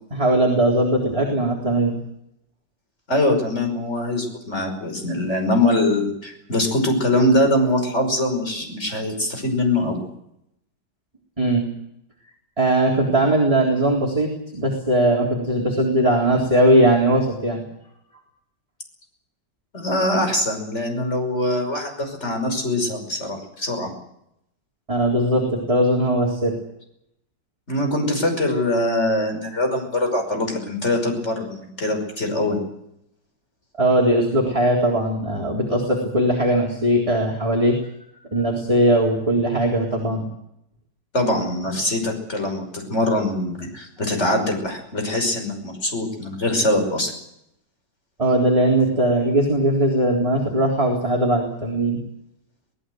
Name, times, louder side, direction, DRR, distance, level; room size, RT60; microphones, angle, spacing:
voice 1, 0.1-2.0 11.4-11.7 12.6-17.6 24.9-26.5 33.8-37.8 38.3-40.3 48.2-52.0, right 1 dB, 15° right, -2 dB, 3.8 m, -19 dB
voice 2, 3.1-10.0 19.7-23.9 27.7-32.6 41.1-47.1, left 1 dB, 40° left, 4 dB, 5.9 m, -23 dB
24.0 x 18.5 x 7.9 m, 0.79 s
omnidirectional pair, 1.9 m